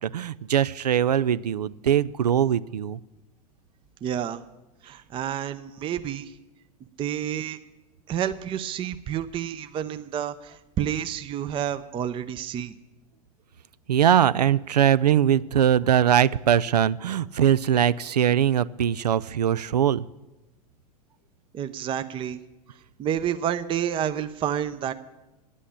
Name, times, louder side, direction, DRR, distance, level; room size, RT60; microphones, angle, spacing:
voice 1, 0.0-3.0 13.9-20.1, right 9 dB, 80° right, 18 dB, 0.4 m, -21 dB
voice 2, 4.0-4.4 4.8-6.3 7.0-7.6 8.1-12.7 21.5-22.4 23.0-24.9, right 10 dB, 25° right, 11 dB, 0.6 m, -29 dB
10.0 x 8.4 x 8.8 m, 1.0 s
hypercardioid pair, 95°, 20 cm